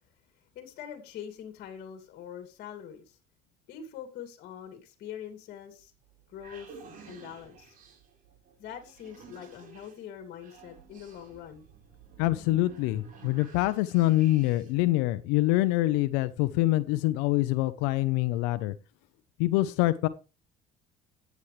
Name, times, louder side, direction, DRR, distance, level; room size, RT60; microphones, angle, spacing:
voice 1, 0.5-3.2 3.7-5.9 6.3-6.8 7.1-7.8 8.6-11.7, left 9 dB, 60° left, 6 dB, 2.5 m, -43 dB
sound 1, 5.8-14.9, right 5 dB, 50° right, 4.6 m, -52 dB
voice 2, 12.2-18.7 19.4-20.1, left 17 dB, 90° left, 13 dB, 0.8 m, -25 dB
14.5 x 9.6 x 3.3 m, 0.30 s
cardioid pair, 115°, 18 cm